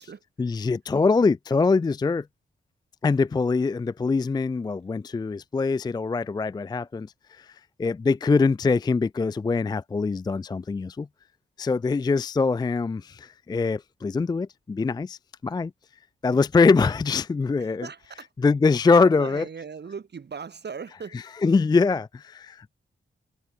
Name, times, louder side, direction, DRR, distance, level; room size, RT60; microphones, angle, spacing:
voice 1, 0.4-2.3 3.0-11.1 11.6-15.7 16.2-17.9 18.4-19.4 21.4-22.7, left 4 dB, 20° left, 0.4 m, -23 dB
voice 2, 17.6-18.3 19.0-21.2, right 6 dB, 55° right, 3.9 m, -39 dB
cardioid pair, 55°, 20 cm